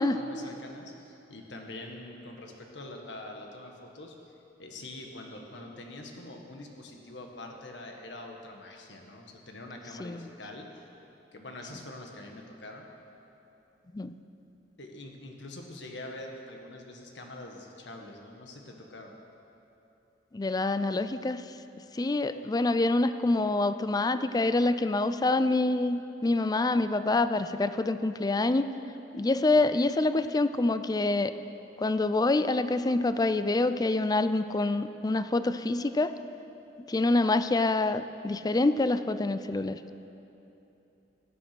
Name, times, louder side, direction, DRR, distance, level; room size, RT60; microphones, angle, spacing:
voice 1, 0.1-4.2 4.6-10.9 11.3-12.9 14.8-19.1, left 2 dB, 85° left, 2 dB, 1.7 m, -44 dB
voice 2, 20.3-21.4 21.9-28.7 29.1-31.3 31.8-36.1 36.9-39.8, left 2 dB, 20° left, 12 dB, 0.4 m, -26 dB
16.0 x 9.9 x 6.1 m, 2.9 s
head